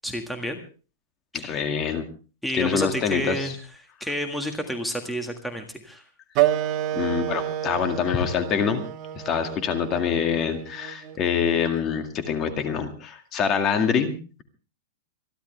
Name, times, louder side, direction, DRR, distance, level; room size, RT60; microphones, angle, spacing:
voice 1, 0.0-0.6 1.3-1.6 2.4-3.5 4.0-6.0, equal, ahead, 4 dB, 1.7 m, -30 dB
voice 2, 1.3-2.0 2.5-3.5 7.0-8.8 9.1-14.1, left 7 dB, 25° left, 7 dB, 2.1 m, -25 dB
Wind instrument woodwind instrument, 6.3-11.5, right 13 dB, 35° right, 1.4 m, -29 dB
26.5 x 11.5 x 3.3 m, 0.36 s
supercardioid pair, 150°, 0 cm